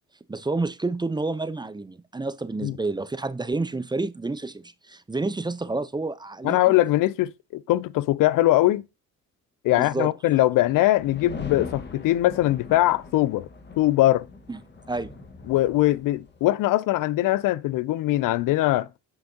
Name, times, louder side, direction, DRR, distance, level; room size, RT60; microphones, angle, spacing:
voice 1, 0.3-6.7 9.7-10.1 14.5-14.6 14.9-15.1, right 3 dB, 15° right, 0.5 m, -29 dB
voice 2, 6.4-8.8 9.6-13.5 13.8-14.3 15.5-18.9, left 16 dB, 75° left, 0.5 m, -21 dB
sound 1, 11.0-16.4, left 4 dB, 35° left, 1.6 m, -41 dB
7.8 x 5.8 x 2.8 m
cardioid pair, 75°, 32 cm